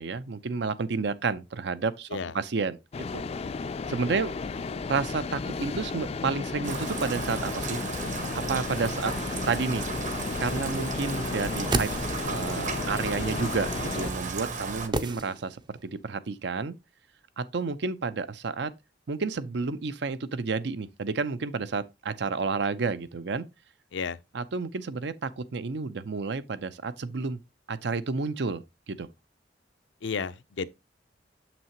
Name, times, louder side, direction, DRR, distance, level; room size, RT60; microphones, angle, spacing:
voice 1, 0.0-2.1 2.3-2.8 3.1-3.2 3.9-4.3 4.9-7.8 8.3-9.1 9.5-9.8 10.4-11.9 12.2-16.7 17.4-18.7 19.1-23.5 24.3-27.4 27.7-28.6 28.9-29.1, right 4 dB, 70° right, 0.6 m, -30 dB
sound 1, 2.9-14.1, left 4 dB, 35° left, 0.4 m, -34 dB
Rain, 6.6-14.9, right 4 dB, 45° right, 1.1 m, -35 dB
sound 2, 11.7-12.5 14.9-15.8 16.1-16.2, right 2 dB, 25° right, 0.5 m, -32 dB
voice 2, 30.0-30.7, left 5 dB, 90° left, 0.6 m, -32 dB
7.3 x 6.0 x 2.9 m
head